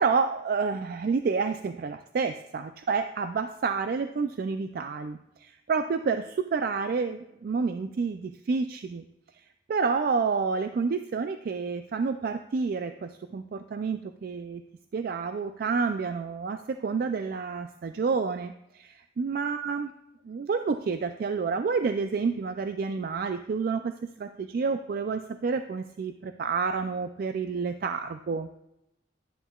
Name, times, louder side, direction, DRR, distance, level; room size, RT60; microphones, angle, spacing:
voice 1, 0.0-9.0 9.7-14.6 14.9-19.9 20.3-28.5, right 5 dB, 55° right, 9 dB, 0.3 m, -29 dB
11.0 x 9.9 x 2.3 m, 0.86 s
head